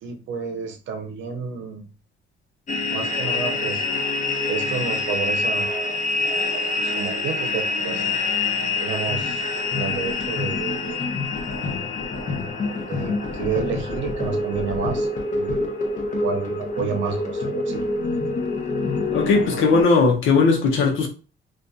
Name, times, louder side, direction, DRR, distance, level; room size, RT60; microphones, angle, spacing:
voice 1, 0.0-1.9 2.9-3.8 4.5-8.0 8.8-11.0 12.9-15.6 16.2-17.9, right 6 dB, 70° right, 0.7 m, -30 dB
sound 1, 2.7-19.8, left 3 dB, 40° left, 0.6 m, -26 dB
voice 2, 19.1-21.1, left 4 dB, 80° left, 0.8 m, -18 dB
2.6 x 2.4 x 2.3 m
cardioid pair, 90°, 20 cm